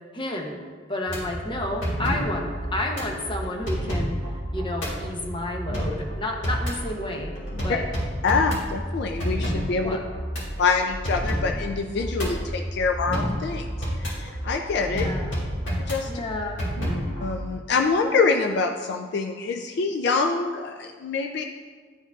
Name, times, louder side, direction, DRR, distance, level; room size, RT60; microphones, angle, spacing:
voice 1, 0.1-0.6 0.9-4.2 4.5-7.3 7.6-7.9 9.8-10.0 14.9-15.3 16.1-16.6, left 1 dB, 25° left, 2 dB, 0.7 m, -30 dB
sound 1, 1.1-17.4, equal, 80° left, 1.9 m, -30 dB
voice 2, 8.2-10.0 10.6-13.7 14.0-15.1 15.8-16.1 17.2-21.4, left 4 dB, 60° left, 4 dB, 0.3 m, -25 dB
11.0 x 4.5 x 2.3 m, 1.6 s
head